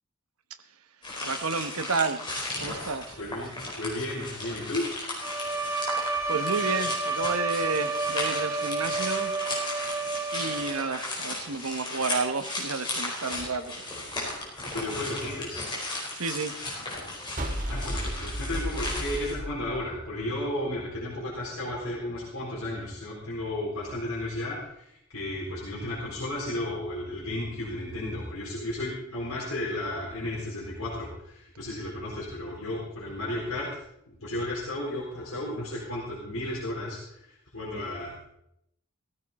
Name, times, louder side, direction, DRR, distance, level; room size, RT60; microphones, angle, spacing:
sound 1, 1.0-19.3, left 2 dB, 20° left, 4.6 m, -36 dB
voice 1, 1.2-2.3 2.6-3.2 6.3-9.4 10.3-13.8 16.1-16.5, right 4 dB, 85° right, 9 dB, 1.1 m, -31 dB
voice 2, 3.2-4.9 14.6-15.6 17.7-38.1, left 1 dB, 80° left, -6 dB, 3.9 m, -34 dB
Bowed string instrument, 5.2-11.0, right 3 dB, 10° right, 0.9 m, -30 dB
sound 2, 17.4-20.6, equal, 35° right, 1.3 m, -33 dB
16.0 x 15.0 x 4.2 m, 0.76 s
head